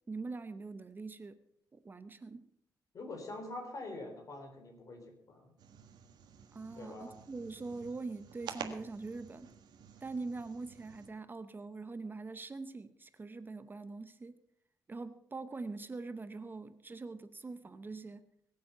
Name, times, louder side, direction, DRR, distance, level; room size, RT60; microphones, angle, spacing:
voice 1, 0.1-1.4 1.7-2.5 6.5-9.5 10.0-14.4 14.9-18.3, right 3 dB, 30° right, 12 dB, 0.8 m, -43 dB
voice 2, 2.9-5.5 6.8-7.2, left 2 dB, 50° left, 4 dB, 3.9 m, -45 dB
sound 1, 5.6-11.1, right 7 dB, 90° right, 1.7 m, -50 dB
22.0 x 7.7 x 5.6 m, 0.74 s
cardioid pair, 110°, 7 cm